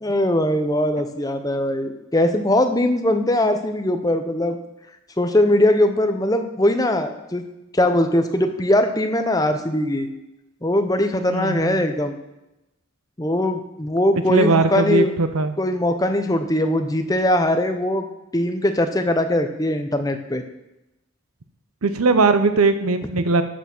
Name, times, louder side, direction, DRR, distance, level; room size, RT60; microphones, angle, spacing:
voice 1, 0.0-4.6 5.2-7.4 7.7-10.1 10.6-12.2 13.2-15.1 15.6-18.1 18.3-20.4, left 1 dB, 15° left, 7 dB, 0.7 m, -20 dB
voice 2, 11.3-11.8 14.3-15.6 21.8-23.4, right 3 dB, 90° right, 10 dB, 0.8 m, -19 dB
12.5 x 5.9 x 6.0 m, 0.93 s
head